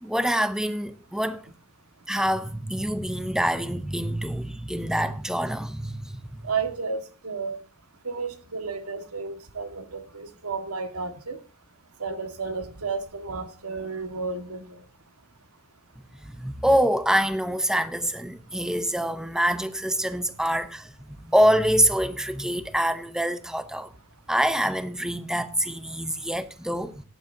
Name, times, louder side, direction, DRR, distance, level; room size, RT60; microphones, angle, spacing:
voice 1, 0.0-1.4 2.1-6.5 16.2-20.9 21.2-23.9 24.3-27.0, equal, 5° right, 0.8 m, -25 dB
voice 2, 6.4-7.6 8.0-11.4 12.0-14.7, right 4 dB, 90° right, 1.9 m, -32 dB
17.0 x 10.5 x 2.8 m
head